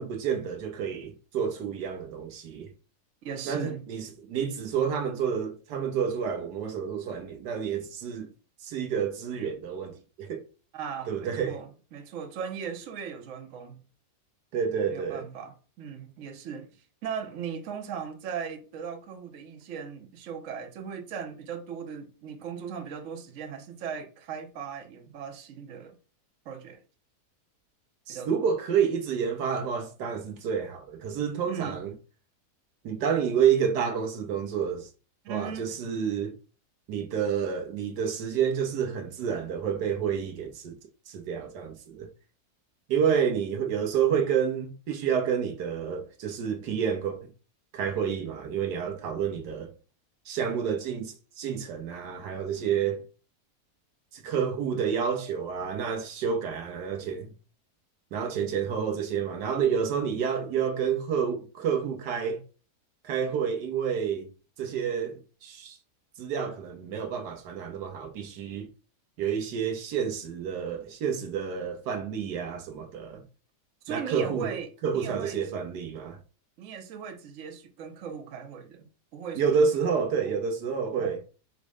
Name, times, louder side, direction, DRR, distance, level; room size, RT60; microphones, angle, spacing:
voice 1, 0.0-2.7 3.4-8.3 8.6-10.4 11.1-11.6 14.5-15.2 28.1-31.9 32.8-34.9 35.3-36.3 36.9-40.8 41.1-42.1 42.9-47.2 47.7-49.7 50.3-53.0 54.1-57.3 58.1-62.4 63.0-64.3 64.6-65.8 66.2-68.7 69.2-73.2 73.9-74.5 74.8-76.2 79.3-81.2, right 7 dB, 85° right, 1.4 m, -29 dB
voice 2, 3.2-3.8 10.7-13.8 14.9-16.7 17.0-25.9 26.5-26.8 28.1-28.3 31.5-31.8 35.2-35.7 73.8-75.4 76.6-78.9 79.1-79.7 81.0-81.2, right 7 dB, 60° right, 1.1 m, -38 dB
5.2 x 2.1 x 4.8 m
omnidirectional pair, 1.7 m